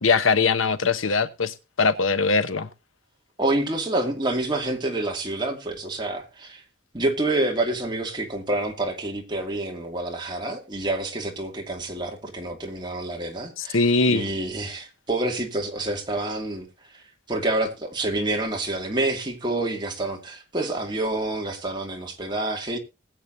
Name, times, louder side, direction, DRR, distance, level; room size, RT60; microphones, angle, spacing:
voice 1, 0.0-2.7 13.6-14.2, left 4 dB, 90° left, 1.0 m, -21 dB
voice 2, 3.4-6.6 6.9-17.0 17.3-22.8, right 2 dB, 25° right, 2.4 m, -28 dB
20.0 x 8.5 x 2.7 m
head